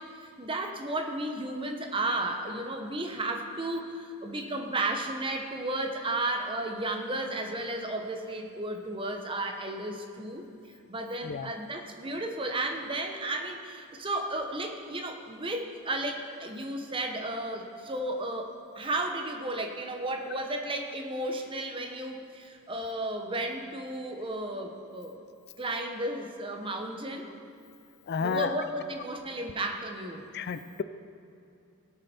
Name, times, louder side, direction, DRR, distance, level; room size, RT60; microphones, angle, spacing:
voice 1, 0.0-10.4 10.9-25.3 25.6-27.3 28.2-30.2, right 1 dB, 25° right, 4 dB, 0.9 m, -33 dB
voice 2, 28.1-28.5 30.3-30.8, left 6 dB, 50° left, 12 dB, 0.4 m, -31 dB
18.0 x 6.7 x 4.3 m, 2.6 s
head